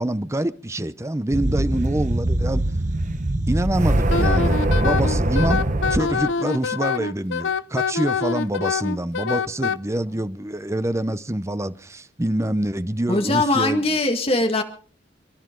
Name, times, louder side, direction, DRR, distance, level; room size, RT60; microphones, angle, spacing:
voice 1, 0.0-2.6 3.5-13.9, right 1 dB, 15° right, 0.7 m, -26 dB
sound 1, 1.3-6.3, right 1 dB, 40° right, 1.2 m, -22 dB
Wind instrument woodwind instrument, 4.1-9.8, left 6 dB, 80° left, 0.6 m, -25 dB
voice 2, 13.1-14.6, left 2 dB, 30° left, 1.8 m, -21 dB
28.5 x 12.0 x 3.8 m
head